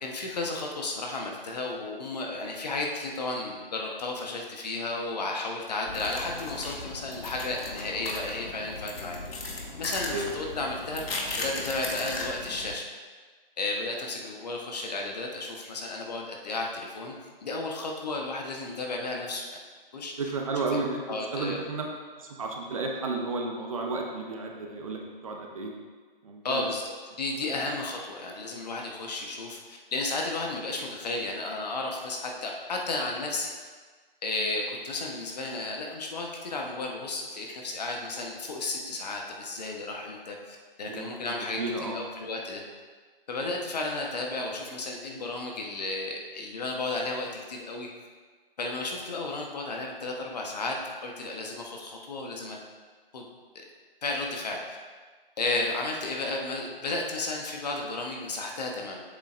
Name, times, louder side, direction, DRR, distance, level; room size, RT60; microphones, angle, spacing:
voice 1, 0.0-9.2 9.8-11.0 11.4-12.9 13.6-17.1 17.4-19.4 19.9-20.1 20.6-20.8 21.1-21.6 26.4-33.5 34.2-41.6 41.9-42.6 43.3-47.9 48.6-50.8 51.0-52.6 53.1-53.2 53.5-53.6 54.0-54.8 55.4-59.0, left 2 dB, 45° left, 0 dB, 1.1 m, -33 dB
sound 1, 5.9-12.7, left 2 dB, 85° left, 1.5 m, -37 dB
voice 2, 20.2-21.0 21.3-21.9 22.2-25.7 26.2-26.7 40.9-42.0, right 3 dB, 35° right, 1 dB, 0.8 m, -32 dB
7.5 x 7.4 x 2.5 m, 1.5 s
hypercardioid pair, 165°, 29 cm